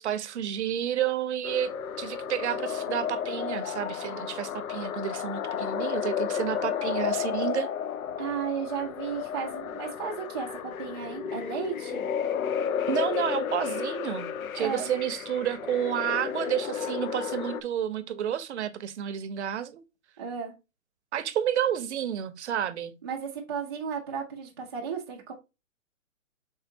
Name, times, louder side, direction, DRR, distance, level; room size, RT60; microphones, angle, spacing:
voice 1, 0.0-1.7 2.0-7.7 12.9-14.3 14.5-19.8 21.1-22.9, right 10 dB, 55° right, 0.6 m, -30 dB
sound 1, 1.4-17.6, left 8 dB, 85° left, 0.5 m, -32 dB
voice 2, 8.2-12.0 14.6-14.9 20.2-20.5 23.0-25.3, right 6 dB, 20° right, 0.4 m, -34 dB
4.4 x 3.6 x 2.6 m
hypercardioid pair, 145°, 41 cm